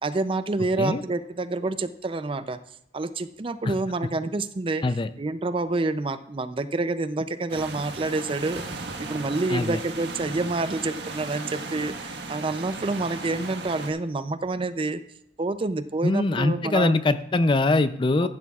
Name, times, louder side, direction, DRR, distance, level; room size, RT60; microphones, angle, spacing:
voice 1, 0.0-2.6 2.9-4.8 5.2-8.6 9.0-15.0 15.4-16.9 18.2-18.3, right 2 dB, 30° right, 12 dB, 0.5 m, -28 dB
sound 1, 7.5-13.9, right 3 dB, 75° right, 1.5 m, -36 dB
voice 2, 16.0-18.3, left 2 dB, 30° left, 12 dB, 0.5 m, -22 dB
15.0 x 11.0 x 2.4 m, 0.78 s
head